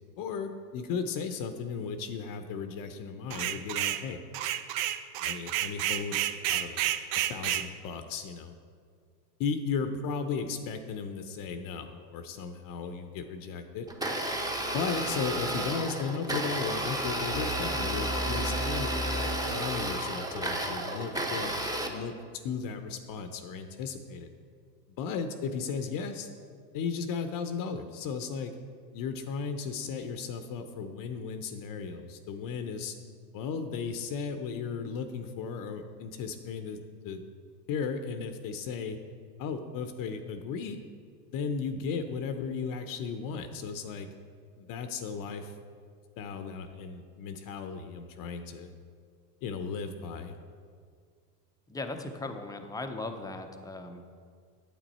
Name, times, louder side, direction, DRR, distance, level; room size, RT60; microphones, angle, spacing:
voice 1, 0.2-4.2 5.2-6.9 7.3-8.5 9.4-13.9 14.7-19.0 19.5-21.5 21.8-22.1 22.4-24.3 25.0-26.3 26.7-28.5 28.9-33.0 33.3-36.8 37.0-37.2 37.7-39.0 39.4-40.8 41.3-44.1 44.6-45.5 46.2-48.7 49.4-50.3, left 5 dB, 45° left, 8 dB, 0.7 m, -35 dB
sound 1, 3.3-4.0 4.3-7.7, right 13 dB, 50° right, 0.6 m, -30 dB
Domestic sounds home sounds, 13.9-21.9, right 1 dB, 5° right, 0.9 m, -32 dB
sound 2, 17.3-20.3, equal, 90° right, 1.7 m, -35 dB
voice 2, 51.7-54.1, left 2 dB, 10° left, 6 dB, 0.6 m, -38 dB
9.2 x 8.2 x 4.2 m, 2.1 s
supercardioid pair, 105°, 49 cm